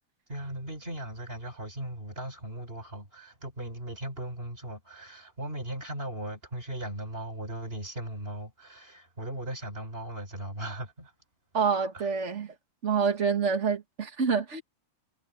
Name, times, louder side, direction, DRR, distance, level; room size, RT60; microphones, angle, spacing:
voice 1, 0.3-11.1 11.9-12.1, right 1 dB, 20° right, 4.6 m, -38 dB
voice 2, 11.5-12.5 12.8-14.6, right 5 dB, 40° right, 1.1 m, -27 dB
omnidirectional pair, 3.4 m